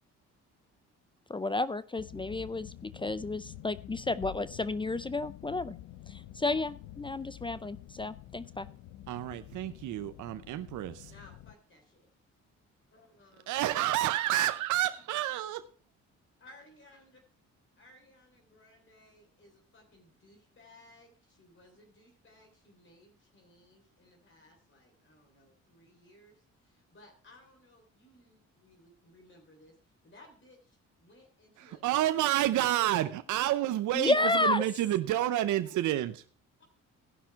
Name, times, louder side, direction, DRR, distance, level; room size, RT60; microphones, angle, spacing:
voice 1, 1.3-5.7 6.1-8.7 33.9-34.6, left 2 dB, 15° left, 16 dB, 0.4 m, -31 dB
sound 1, 2.0-11.5, left 14 dB, 85° left, 0.5 m, -48 dB
voice 2, 9.1-11.1 13.5-15.6 31.6-36.2, right 13 dB, 75° right, 11 dB, 0.6 m, -29 dB
voice 3, 11.1-12.1 12.9-13.6 16.4-17.2 17.8-32.7 33.3-33.4 36.6-36.7, left 1 dB, 40° left, 2 dB, 3.3 m, -59 dB
15.5 x 5.9 x 4.6 m, 0.41 s
cardioid pair, 90°, 30 cm